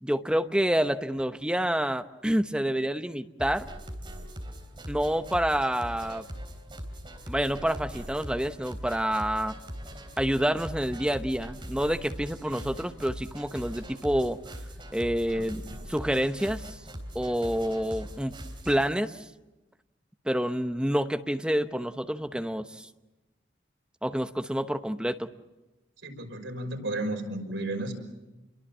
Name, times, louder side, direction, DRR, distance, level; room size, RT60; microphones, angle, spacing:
voice 1, 0.0-3.7 4.9-6.3 7.3-9.5 10.2-14.4 14.9-15.6 15.9-16.8 17.1-18.4 18.7-19.3 20.2-22.9 24.0-25.3, equal, 5° right, 8 dB, 0.9 m, -28 dB
sound 1, 3.4-18.9, equal, 25° right, 3.7 m, -41 dB
voice 2, 15.3-15.8 26.0-27.9, right 1 dB, 85° right, 3 dB, 5.8 m, -34 dB
29.0 x 23.0 x 7.4 m, 1.0 s
head